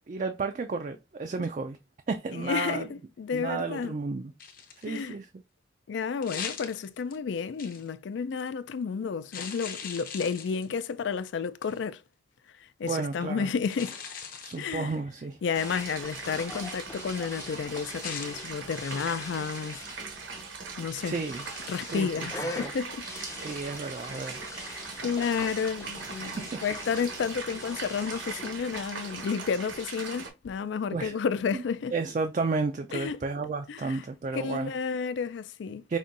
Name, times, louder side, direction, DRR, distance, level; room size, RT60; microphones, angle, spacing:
voice 1, 0.1-1.8 2.1-2.9 3.3-4.3 4.8-5.3 12.8-13.5 14.4-15.4 21.0-21.4 21.9-22.3 22.6-22.7 23.4-24.4 26.2-26.6 30.9-31.2 31.5-31.6 31.9-34.7 35.9-36.0, right 4 dB, 40° right, 0.3 m, -32 dB
voice 2, 2.3-3.9 4.8-5.2 5.9-12.0 12.8-14.0 14.6-15.0 15.4-19.8 20.8-21.2 21.7-23.1 24.6-31.9 32.9-33.2 33.7-34.0 34.3-35.8, left 6 dB, 70° left, 0.3 m, -31 dB
sound 1, 4.4-5.1 6.2-7.2 7.6-7.9 9.3-10.8 11.6-11.8 13.6-14.7 18.0-18.3, left 6 dB, 45° left, 0.8 m, -40 dB
sound 2, 15.5-30.3, right 4 dB, 80° right, 1.1 m, -40 dB
sound 3, 15.6-28.9, left 2 dB, 15° left, 0.5 m, -44 dB
5.3 x 2.6 x 2.5 m
head